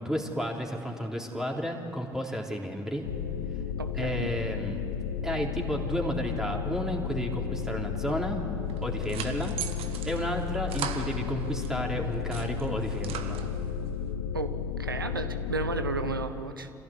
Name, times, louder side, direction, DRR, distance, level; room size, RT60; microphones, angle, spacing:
voice 1, 0.0-3.0 4.0-4.8 5.2-8.4 8.8-9.5 10.1-13.4, equal, 5° right, 0 dB, 3.5 m, -32 dB
sound 1, 3.0-16.3, left 7 dB, 80° left, 0.6 m, -33 dB
voice 2, 3.8-4.3 14.3-16.7, right 3 dB, 90° right, 10 dB, 0.9 m, -33 dB
sound 2, 8.7-11.7 12.1-13.8, right 8 dB, 55° right, 1.4 m, -39 dB
26.0 x 16.0 x 8.4 m, 2.8 s
figure-of-eight pair, 50°, 11 cm